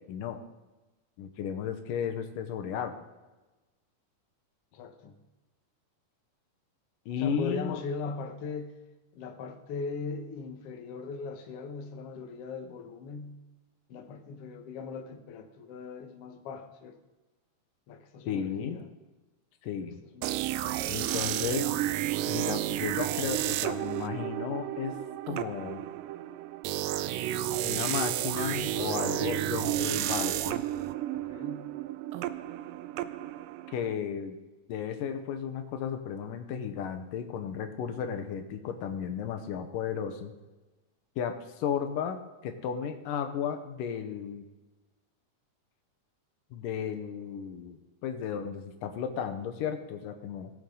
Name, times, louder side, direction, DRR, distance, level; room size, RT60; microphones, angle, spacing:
voice 1, 0.1-0.4 1.2-3.0 7.1-7.8 18.3-18.8 19.6-20.0 20.9-21.7 22.3-24.9 25.3-25.8 27.6-30.6 33.7-34.4 34.7-40.3 41.2-44.5 46.5-50.5, left 8 dB, 85° left, 7 dB, 2.6 m, -34 dB
voice 2, 4.7-5.2 7.2-8.7 9.1-13.4 13.9-17.0 17.9-18.9 19.8-20.8 21.2-21.7 31.1-31.7, left 4 dB, 60° left, 5 dB, 1.7 m, -39 dB
sound 1, 20.2-33.9, right 14 dB, 80° right, 2.1 m, -32 dB
19.0 x 7.2 x 3.9 m, 1.1 s
omnidirectional pair, 3.8 m